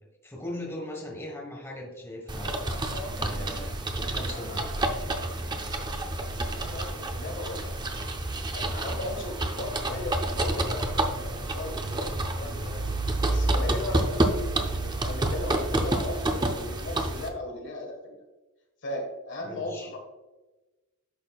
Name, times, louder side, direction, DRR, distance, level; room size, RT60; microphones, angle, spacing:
voice 1, 0.2-2.5 3.2-4.6 8.8-9.0 19.4-19.9, left 1 dB, 10° left, -1 dB, 1.4 m, -39 dB
sound 1, 2.3-17.3, right 1 dB, 20° right, 0.6 m, -29 dB
voice 2, 2.6-3.1 4.2-4.7 6.3-7.8 8.5-12.9 13.3-14.2 14.8-18.2 18.8-20.0, left 1 dB, 55° left, 2 dB, 1.6 m, -37 dB
10.0 x 6.5 x 2.4 m, 1.1 s
head